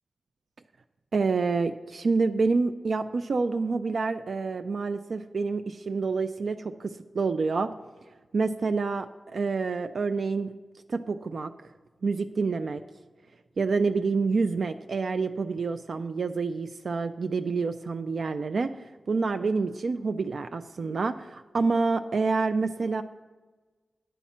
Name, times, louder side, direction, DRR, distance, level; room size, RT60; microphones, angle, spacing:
voice 1, 1.1-7.7 8.3-10.5 10.9-11.5 12.0-12.8 13.6-23.0, right 4 dB, 65° right, 9 dB, 0.3 m, -28 dB
10.0 x 4.3 x 7.1 m, 1.3 s
wide cardioid pair, 105°, 0 cm